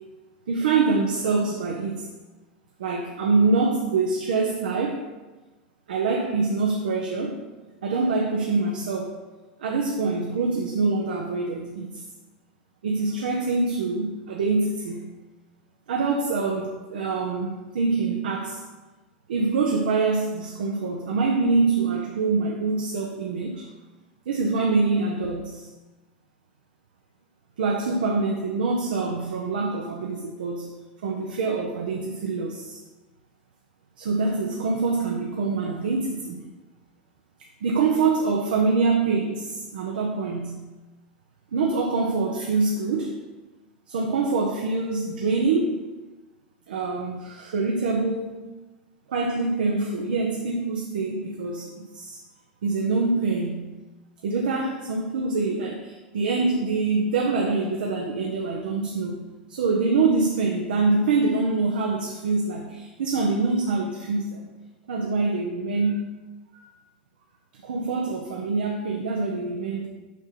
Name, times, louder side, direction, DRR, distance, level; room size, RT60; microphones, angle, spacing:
voice 1, 0.5-2.1 2.8-5.0 5.9-7.4 7.8-9.2 9.6-12.0 12.8-15.0 15.9-18.6 19.3-23.7 24.3-25.7 27.6-30.7 31.0-32.8 34.0-36.4 37.6-40.6 41.5-43.1 43.9-45.8 46.7-48.5 49.1-52.2 52.6-53.7 54.2-59.2 59.5-64.4 64.9-66.0 66.5-66.6 67.6-69.9, right 3 dB, 70° right, 1 dB, 0.9 m, -25 dB
7.5 x 5.6 x 3.9 m, 1.2 s
figure-of-eight pair, 85°, 5 cm